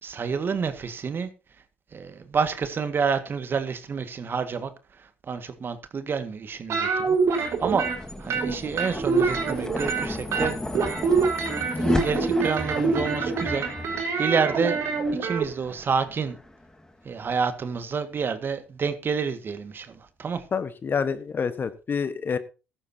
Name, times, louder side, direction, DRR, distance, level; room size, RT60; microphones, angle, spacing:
voice 1, 0.0-1.3 1.9-4.7 5.0-10.6 11.8-14.8 15.2-16.4 17.0-20.4, right 5 dB, 40° right, 1.8 m, -29 dB
sound 1, 6.7-8.0 8.3-10.1 10.3-15.5, right 4 dB, 55° right, 5.1 m, -25 dB
sound 2, 6.9-17.4, left 1 dB, 10° left, 1.8 m, -34 dB
voice 2, 20.5-22.4, left 6 dB, 40° left, 1.3 m, -27 dB
15.5 x 12.5 x 2.8 m
hypercardioid pair, 60°, 6 cm